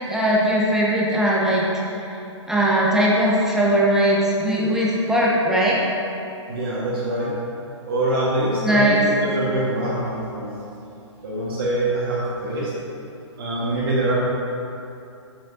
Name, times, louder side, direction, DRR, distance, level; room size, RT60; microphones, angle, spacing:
voice 1, 0.0-1.7 2.5-5.8 8.6-9.0, right 1 dB, 5° right, -6 dB, 0.9 m, -19 dB
voice 2, 6.5-7.3 7.9-10.5 11.2-12.7 13.4-14.1, right 1 dB, 50° right, -7 dB, 1.6 m, -24 dB
8.2 x 6.6 x 2.8 m, 2.7 s
figure-of-eight pair, 130°, 16 cm